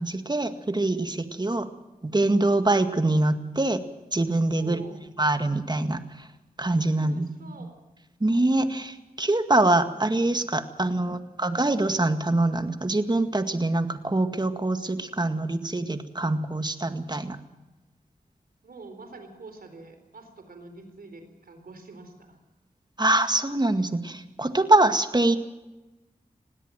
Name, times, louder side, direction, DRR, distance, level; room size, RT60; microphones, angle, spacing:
voice 1, 0.0-1.7 2.0-3.8 4.1-4.8 5.2-6.3 6.6-7.7 8.2-17.4 23.0-25.4, right 2 dB, 30° right, 8 dB, 2.0 m, -24 dB
voice 2, 4.6-5.1 6.9-7.7 18.6-22.4, right 3 dB, 80° right, 7 dB, 4.1 m, -46 dB
20.5 x 17.0 x 7.5 m, 1.1 s
cardioid pair, 45°, 15 cm